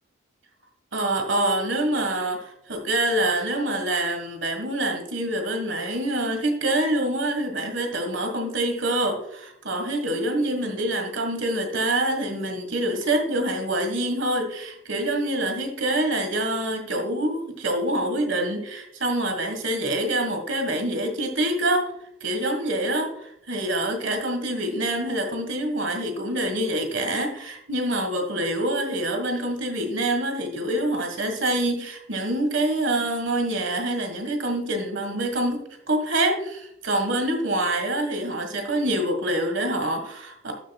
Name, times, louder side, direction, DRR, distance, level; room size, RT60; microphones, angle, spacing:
voice 1, 0.9-21.9 22.2-40.5, right 1 dB, 60° right, 5 dB, 1.6 m, -26 dB
12.0 x 7.2 x 2.3 m, 0.76 s
head